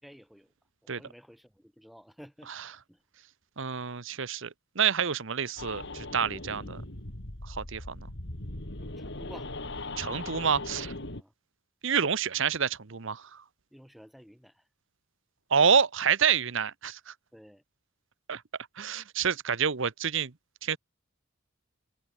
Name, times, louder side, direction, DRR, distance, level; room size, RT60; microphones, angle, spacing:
voice 1, 0.0-0.5 0.9-3.0 8.8-9.5 11.1-11.3 13.7-14.6 17.3-17.6, equal, ahead, 6.9 m, -52 dB
voice 2, 3.6-6.8 7.5-8.1 10.0-10.9 11.8-13.4 15.5-17.1 18.3-18.4 18.8-20.3 20.6-20.8, right 7 dB, 60° right, 1.0 m, -28 dB
sound 1, 5.6-11.2, left 2 dB, 55° left, 3.3 m, -39 dB
head